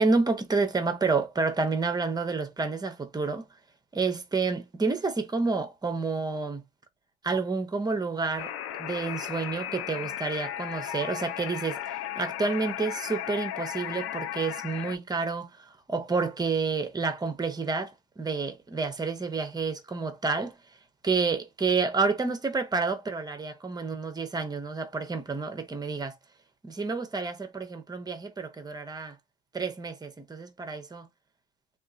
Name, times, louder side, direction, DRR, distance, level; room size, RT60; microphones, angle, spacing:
voice 1, 0.0-3.5 3.9-6.6 7.2-8.5 8.8-20.6 21.0-26.2 26.6-29.1 29.5-31.1, right 4 dB, 15° right, 0.7 m, -29 dB
sound 1, 8.4-15.0, left 11 dB, 50° left, 0.4 m, -35 dB
2.8 x 2.4 x 2.4 m
supercardioid pair, 110°, 31 cm